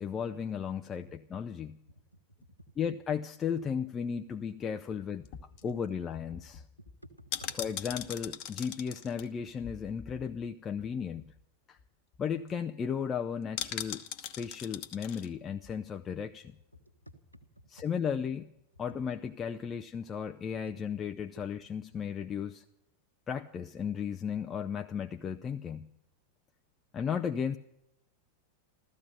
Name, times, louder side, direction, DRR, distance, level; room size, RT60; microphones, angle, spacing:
voice 1, 0.0-1.8 2.8-5.2 5.6-6.6 7.6-11.2 11.7-11.8 12.2-16.5 17.7-18.4 18.8-22.6 23.3-25.9 26.9-27.6, left 7 dB, 25° left, 6 dB, 0.6 m, -35 dB
voice 2, 1.9-2.6 4.2-4.3 6.8-7.6 16.7-17.5 17.8-17.9 20.7-20.8 21.3-21.4, equal, 90° left, 6 dB, 1.3 m, -54 dB
sound 1, 5.2-10.5 10.8-10.9 11.1-11.4 11.8-11.9 12.1-12.5 13.6-15.3 15.6-15.7, left 10 dB, 45° left, 1.0 m, -41 dB
14.5 x 14.5 x 6.6 m, 0.81 s
figure-of-eight pair, 90°, 0 cm